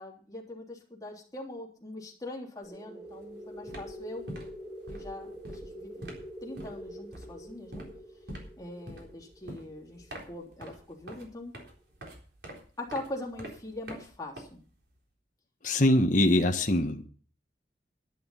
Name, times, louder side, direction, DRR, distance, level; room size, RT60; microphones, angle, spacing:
voice 1, 0.0-4.3 4.9-6.1 6.4-7.9 8.6-11.5 12.8-14.6, left 1 dB, 20° left, 3.3 m, -42 dB
sound 1, 2.6-11.0, equal, 10° right, 7.5 m, -46 dB
sound 2, 3.1-3.3 3.5-15.0, right 1 dB, 70° right, 3.8 m, -46 dB
voice 2, 15.6-17.1, left 1 dB, 45° left, 1.3 m, -23 dB
11.0 x 11.0 x 5.7 m
head